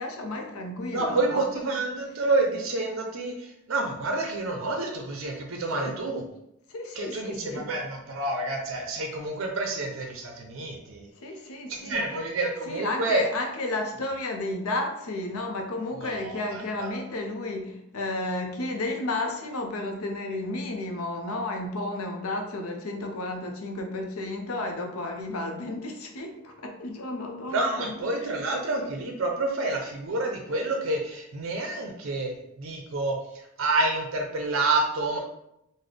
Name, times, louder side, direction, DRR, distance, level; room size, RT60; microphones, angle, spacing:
voice 1, 0.0-1.7 5.8-6.0 6.7-7.7 11.2-12.2 12.7-28.3, left 2 dB, 85° left, 4 dB, 0.6 m, -32 dB
voice 2, 0.9-6.2 7.0-11.1 11.7-13.2 16.0-17.0 27.5-33.2 33.6-35.2, right 2 dB, 65° right, 2 dB, 0.5 m, -28 dB
3.8 x 2.1 x 3.3 m, 0.81 s
head